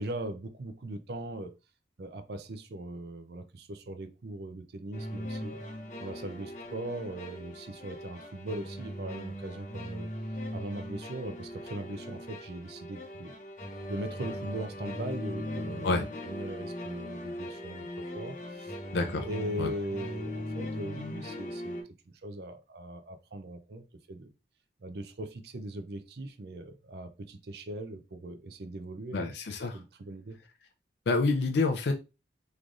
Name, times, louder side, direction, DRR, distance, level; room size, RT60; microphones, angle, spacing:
voice 1, 0.0-1.5 2.0-5.6 6.0-10.1 10.5-13.3 13.9-18.8 19.2-21.8 22.2-24.3 24.8-29.3 29.7-30.4, right 1 dB, 60° right, 9 dB, 0.5 m, -40 dB
sound 1, 4.9-21.8, left 1 dB, 40° left, 0.8 m, -39 dB
voice 2, 18.9-19.3 19.6-19.7 29.1-29.8 31.1-31.9, left 3 dB, 65° left, 4 dB, 0.4 m, -27 dB
3.7 x 3.2 x 2.4 m, 0.27 s
head